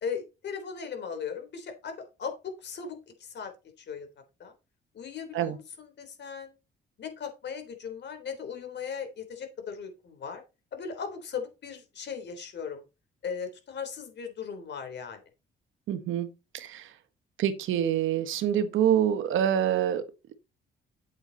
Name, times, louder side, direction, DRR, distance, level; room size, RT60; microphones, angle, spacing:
voice 1, 0.0-3.5 3.8-4.1 4.4-4.5 4.9-6.5 7.0-10.4 10.7-12.8 13.2-15.2, left 6 dB, 60° left, 3.7 m, -38 dB
voice 2, 15.9-16.3 16.5-16.8 17.4-20.0, right 10 dB, 80° right, 1.5 m, -26 dB
8.8 x 8.0 x 4.1 m
cardioid pair, 90°, 20 cm